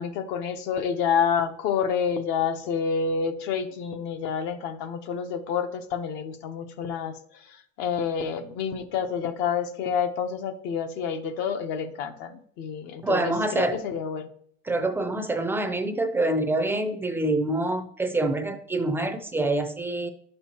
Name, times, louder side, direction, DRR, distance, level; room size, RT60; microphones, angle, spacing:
voice 1, 0.0-14.3, left 6 dB, 60° left, 8 dB, 0.8 m, -28 dB
voice 2, 13.0-13.8 14.7-20.1, right 2 dB, 10° right, 8 dB, 0.5 m, -26 dB
10.5 x 6.6 x 2.9 m, 0.64 s
supercardioid pair, 140°, 21 cm